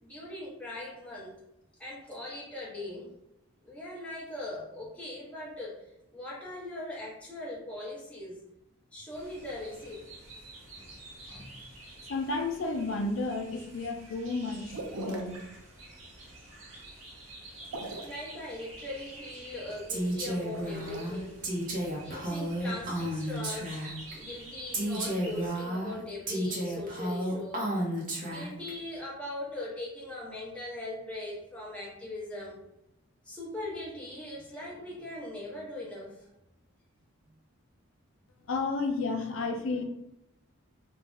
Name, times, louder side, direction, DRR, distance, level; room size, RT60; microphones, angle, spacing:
voice 1, 0.0-1.3 1.8-3.1 3.6-5.8 6.1-8.4 8.9-10.1 10.7-10.9 11.3-11.5 18.0-27.7 28.2-32.6 33.2-36.3, left 1 dB, 5° left, -5 dB, 0.6 m, -40 dB
sound 1, 9.1-25.5, right 1 dB, 65° right, 0.8 m, -49 dB
voice 2, 12.1-15.4 38.5-39.8, left 3 dB, 70° left, 4 dB, 0.4 m, -32 dB
sound 2, 14.7-15.4 17.6-18.2 20.4-21.0, right 2 dB, 90° right, 0.5 m, -40 dB
Female speech woman speaking, 19.9-24.1 24.7-28.7, right 1 dB, 40° right, 0.6 m, -32 dB
2.5 x 2.0 x 3.5 m, 0.86 s
head